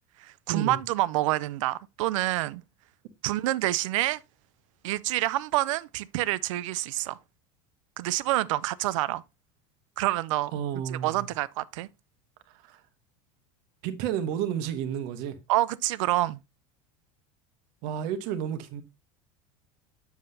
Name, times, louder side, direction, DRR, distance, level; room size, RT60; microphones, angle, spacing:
voice 1, 0.2-2.6 3.2-4.2 4.8-7.2 8.0-9.2 10.0-10.5 10.9-11.9 15.5-16.4, right 16 dB, 85° right, 0.5 m, -27 dB
voice 2, 10.5-11.3 12.5-12.8 13.8-15.4 17.8-18.8, right 9 dB, 60° right, 1.2 m, -31 dB
7.7 x 7.1 x 2.7 m
supercardioid pair, 135°, 16 cm